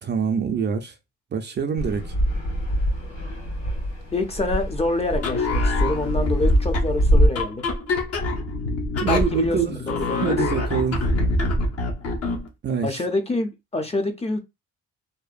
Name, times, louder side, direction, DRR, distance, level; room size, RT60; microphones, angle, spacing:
voice 1, 0.0-0.9 1.3-2.1 9.0-9.8 10.2-11.0 12.6-13.0, right 6 dB, 35° right, 0.4 m, -25 dB
Fixed-wing aircraft airplane, 1.8-7.3, equal, 75° left, 1.5 m, -24 dB
voice 2, 4.1-7.7 9.0-10.4 12.8-14.4, left 2 dB, 20° left, 0.5 m, -26 dB
sound 1, 5.1-12.5, left 2 dB, 55° left, 0.8 m, -25 dB
2.7 x 2.1 x 2.4 m
cardioid pair, 90°, 30 cm